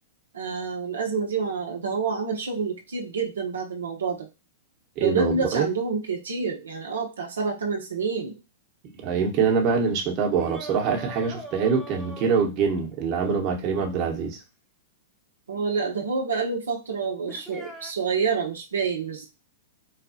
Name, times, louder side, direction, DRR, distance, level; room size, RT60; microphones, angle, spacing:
voice 1, 0.3-4.3 5.0-8.4 15.5-19.3, right 5 dB, 85° right, 0.8 m, -28 dB
voice 2, 5.0-5.7 9.0-14.4, right 6 dB, 40° right, 1.1 m, -24 dB
sound 1, 10.4-12.9 15.5-15.6 17.3-17.9, right 1 dB, ahead, 0.8 m, -41 dB
4.1 x 2.3 x 2.7 m
hypercardioid pair, 115°, 0 cm